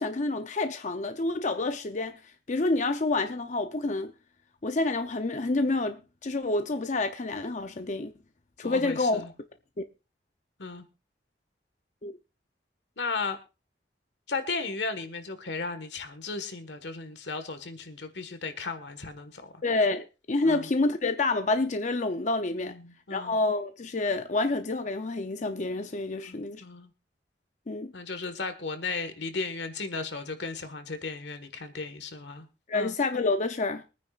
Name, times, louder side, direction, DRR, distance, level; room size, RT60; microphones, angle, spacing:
voice 1, 0.0-2.2 2.5-4.1 4.6-8.1 8.6-9.3 12.0-12.2 19.6-22.8 23.1-26.6 27.7-27.9 32.7-33.8, left 2 dB, 45° left, 0.6 m, -28 dB
voice 2, 8.6-9.3 10.6-10.8 13.0-13.4 14.3-19.6 20.4-20.7 22.6-23.4 26.2-26.9 27.9-32.5 32.7-33.0, left 4 dB, 85° left, 1.5 m, -35 dB
24.0 x 9.4 x 2.4 m
head